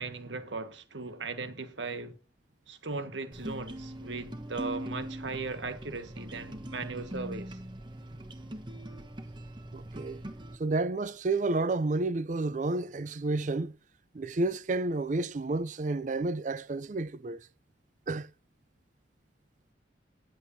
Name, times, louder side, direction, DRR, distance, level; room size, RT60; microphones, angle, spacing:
voice 1, 0.0-2.2 2.7-7.6, right 3 dB, 75° right, 1.6 m, -38 dB
sound 1, 3.3-10.6, right 1 dB, 25° right, 1.2 m, -41 dB
voice 2, 9.7-10.2 10.6-13.7 14.1-17.4 18.1-18.3, right 2 dB, 40° right, 0.4 m, -30 dB
19.5 x 7.8 x 2.7 m
head